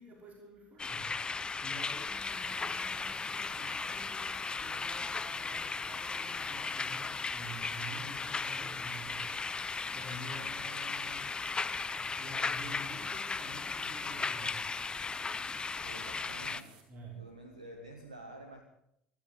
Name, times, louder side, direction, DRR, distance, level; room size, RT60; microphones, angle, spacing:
voice 1, 0.0-11.8 12.0-14.6 16.9-17.2, right 1 dB, 40° right, 1 dB, 5.4 m, -49 dB
sound 1, 0.8-16.6, left 4 dB, 25° left, 1.0 m, -36 dB
sound 2, 1.8-16.8, right 6 dB, 60° right, 5.1 m, -57 dB
voice 2, 10.1-10.6 15.8-16.8 17.1-18.6, right 1 dB, 85° right, 6 dB, 1.8 m, -49 dB
25.0 x 13.0 x 8.5 m, 0.77 s
figure-of-eight pair, 55°, 4 cm